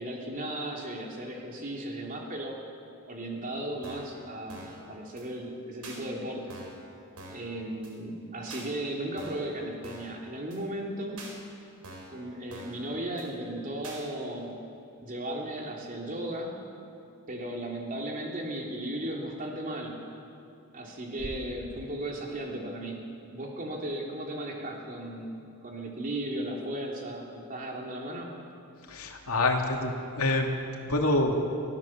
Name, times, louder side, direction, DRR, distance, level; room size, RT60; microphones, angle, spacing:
voice 1, 0.0-2.5 3.1-6.6 7.3-11.2 12.1-14.5 15.0-16.5 17.3-19.9 20.7-23.0 23.3-28.3, right 1 dB, 40° right, -1 dB, 3.3 m, -36 dB
sound 1, 3.8-4.2 4.5-4.8 5.2-5.3 5.8-6.0 6.5-6.8 7.2-7.5 7.8-7.9 8.5-8.7 9.2-9.5 9.8-10.2 10.5-10.6 11.2-11.3 11.8-12.2 12.5-12.8 13.2-13.3 13.8-14.0, right 2 dB, 80° right, 4.4 m, -45 dB
voice 2, 28.9-30.5 30.8-31.4, left 2 dB, 75° left, 1 dB, 2.6 m, -26 dB
23.5 x 15.0 x 7.5 m, 2.6 s
head